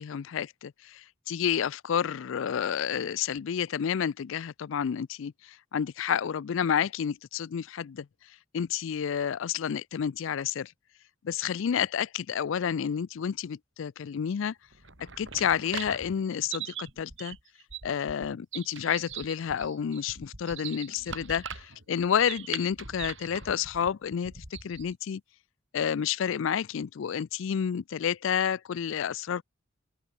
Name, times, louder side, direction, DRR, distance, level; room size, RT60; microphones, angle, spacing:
voice 1, 0.0-8.1 8.5-10.7 11.2-14.5 15.2-17.4 17.8-25.2 25.7-29.4, left 8 dB, 65° left, 0.4 m, -30 dB
sound 1, 14.7-25.0, right 7 dB, 60° right, 5.8 m, -41 dB
open air
head